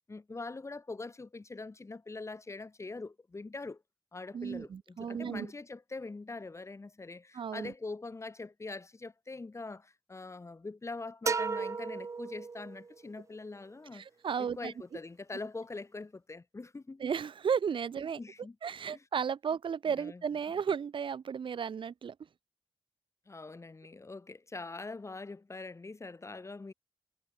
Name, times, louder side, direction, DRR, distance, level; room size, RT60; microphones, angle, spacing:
voice 1, 0.1-3.8 4.1-14.1 14.4-17.0 17.9-18.6 18.9-19.0 20.0-20.2 23.3-26.7, left 3 dB, 35° left, 2.4 m, -43 dB
voice 2, 4.3-5.5 7.3-7.7 13.9-14.7 17.0-18.2 18.6-22.1, right 7 dB, 90° right, 1.1 m, -34 dB
sound 1, 11.3-13.0, right 4 dB, 40° right, 0.4 m, -34 dB
wide cardioid pair, 95°, 8 cm